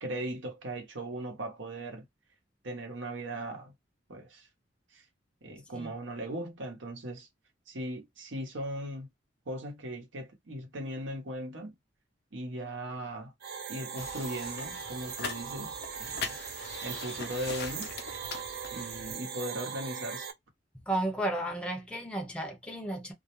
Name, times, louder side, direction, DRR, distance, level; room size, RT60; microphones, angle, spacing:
voice 1, 0.0-2.0 2.6-3.7 4.1-4.5 4.9-5.0 5.4-7.3 7.7-9.1 9.5-11.7 12.3-13.3 13.7-16.4 16.8-17.9 18.7-20.3, right 1 dB, 85° right, 0.8 m, -38 dB
sound 1, 13.4-20.3, right 7 dB, 55° right, 0.5 m, -40 dB
sound 2, 14.0-19.1, left 5 dB, 60° left, 0.6 m, -42 dB
voice 2, 20.9-23.1, right 1 dB, 5° left, 0.6 m, -33 dB
2.4 x 2.0 x 2.9 m
head